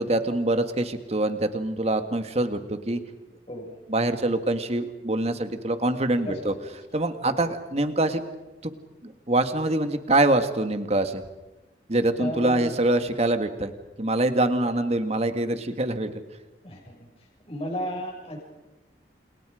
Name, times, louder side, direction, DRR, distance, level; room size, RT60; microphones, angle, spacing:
voice 1, 0.0-3.0 3.9-6.5 6.9-8.2 8.6-8.7 9.0-11.2 11.9-13.7 14.0-16.1, right 2 dB, 35° right, 8 dB, 1.9 m, -24 dB
voice 2, 6.2-6.7 7.2-7.3 12.2-12.7 16.6-17.1 17.5-18.4, equal, 35° left, -2 dB, 6.5 m, -34 dB
29.0 x 28.5 x 5.1 m, 1.0 s
head